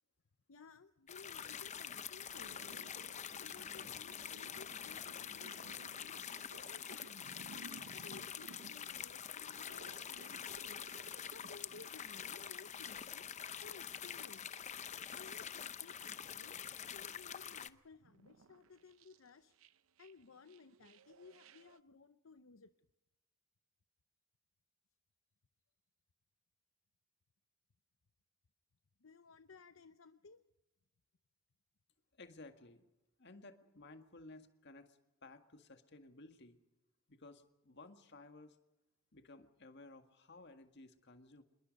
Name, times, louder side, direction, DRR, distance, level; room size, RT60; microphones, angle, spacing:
voice 1, 0.5-2.9 3.4-6.2 6.7-7.4 7.9-10.9 11.3-13.3 13.6-14.5 15.1-16.6 16.9-19.5 20.0-22.7 29.0-30.4, left 4 dB, 75° left, 10 dB, 0.7 m, -58 dB
sound 1, 1.1-17.7, left 8 dB, 35° left, 0.7 m, -46 dB
sound 2, 2.3-11.9 12.3-12.9 14.9-16.6 16.9-21.8, right 3 dB, 80° right, 0.7 m, -59 dB
voice 2, 32.1-32.8 33.2-36.6 37.1-38.6 39.1-41.4, left 2 dB, 55° left, 7 dB, 1.9 m, -56 dB
27.0 x 21.5 x 5.3 m, 0.97 s
head